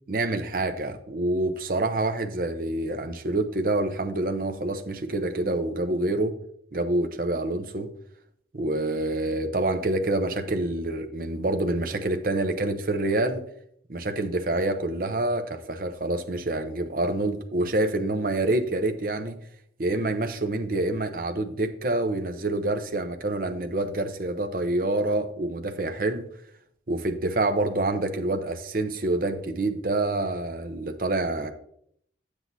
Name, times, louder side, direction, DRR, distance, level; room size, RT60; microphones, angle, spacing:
voice 1, 0.1-6.4 6.7-7.9 8.5-13.4 13.9-19.4 19.8-26.3 26.9-31.5, right 2 dB, 50° right, 7 dB, 0.8 m, -27 dB
8.8 x 8.0 x 2.7 m, 0.68 s
head